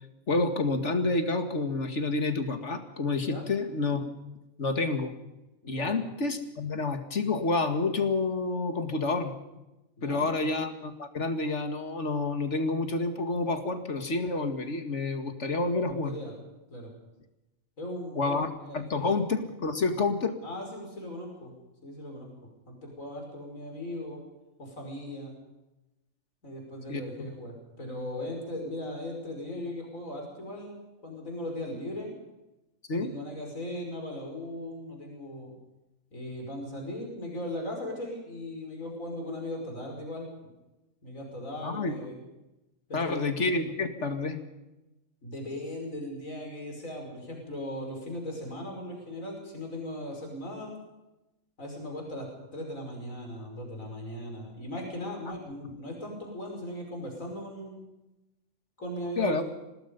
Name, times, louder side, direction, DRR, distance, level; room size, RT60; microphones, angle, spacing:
voice 1, 0.3-4.1 4.6-5.1 5.7-9.3 10.0-16.1 18.2-18.5 18.7-20.3 26.9-27.3 32.9-33.1 41.6-41.9 42.9-44.4 59.2-59.4, left 3 dB, 60° left, 7 dB, 2.4 m, -29 dB
voice 2, 5.6-5.9 10.0-10.2 15.8-16.3 16.7-16.9 17.8-19.1 20.4-21.5 21.8-22.3 22.7-24.2 24.6-25.3 26.4-30.8 31.0-32.1 32.9-35.5 36.1-40.3 41.0-42.2 42.9-43.3 45.2-50.8 51.6-57.8 58.8-59.4, left 1 dB, 75° left, 1 dB, 6.0 m, -38 dB
26.0 x 19.0 x 5.4 m, 0.99 s
omnidirectional pair, 1.4 m